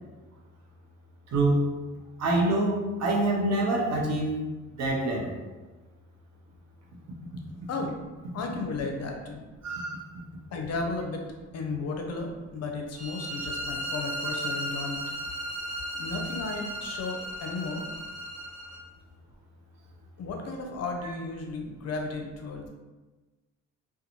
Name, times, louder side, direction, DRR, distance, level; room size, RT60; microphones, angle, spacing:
voice 1, 1.3-1.7 2.2-4.4 4.8-5.4 9.6-10.0, right 2 dB, 60° right, -1 dB, 0.7 m, -25 dB
voice 2, 8.3-9.4 10.5-11.2 11.5-15.0 15.9-17.8 20.2-22.7, left 3 dB, 55° left, 2 dB, 0.6 m, -34 dB
sound 1, 13.0-18.8, equal, 25° right, 0.8 m, -35 dB
2.5 x 2.3 x 2.9 m, 1.2 s
cardioid pair, 90°, 30 cm